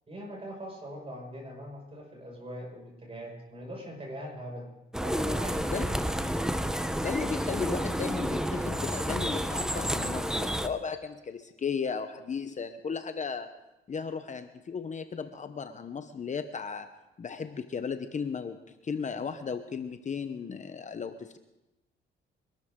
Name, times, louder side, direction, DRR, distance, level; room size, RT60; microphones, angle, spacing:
voice 1, 0.1-4.7 5.0-6.1, equal, 30° right, 0 dB, 6.0 m, -42 dB
sound 1, 4.9-10.7, equal, 5° right, 0.9 m, -30 dB
voice 2, 7.0-13.5 13.9-16.9 17.2-18.6 18.8-21.4, left 6 dB, 35° left, 9 dB, 0.9 m, -35 dB
24.5 x 12.5 x 3.8 m, 0.97 s
cardioid pair, 90°, 20 cm